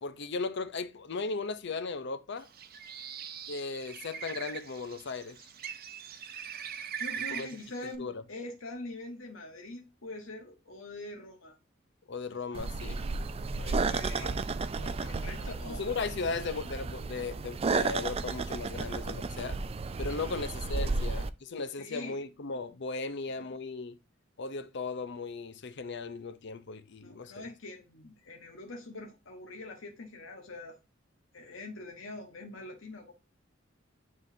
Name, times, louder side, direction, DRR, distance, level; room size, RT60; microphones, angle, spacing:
voice 1, 0.0-2.5 3.5-5.4 7.3-7.5 7.8-8.2 12.1-13.0 14.2-14.3 15.4-19.6 20.0-24.0 24.4-27.5, left 4 dB, 60° left, 0.7 m, -37 dB
Bird, 2.4-7.9, right 8 dB, 50° right, 0.7 m, -41 dB
voice 2, 7.0-11.6 13.6-15.9 20.2-20.3 20.9-21.0 21.8-22.2 23.4-23.5 27.0-30.8 31.3-33.1, left 2 dB, 85° left, 1.2 m, -44 dB
sound 1, 12.5-21.3, right 3 dB, 30° right, 0.4 m, -33 dB
9.4 x 3.9 x 2.7 m
head